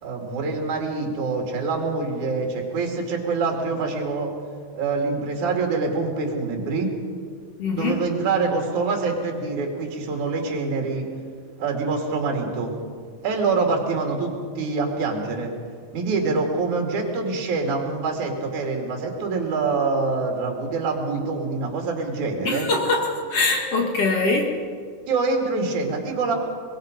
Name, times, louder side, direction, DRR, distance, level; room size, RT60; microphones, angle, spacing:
voice 1, 0.0-4.3 4.8-6.9 7.7-11.1 11.6-12.7 13.2-15.5 15.9-22.7 25.1-26.3, right 4 dB, 65° right, 1 dB, 3.9 m, -25 dB
voice 2, 7.6-8.0 22.4-24.5, left 3 dB, 50° left, 1 dB, 2.7 m, -23 dB
23.5 x 21.5 x 5.2 m, 2.1 s
omnidirectional pair, 3.7 m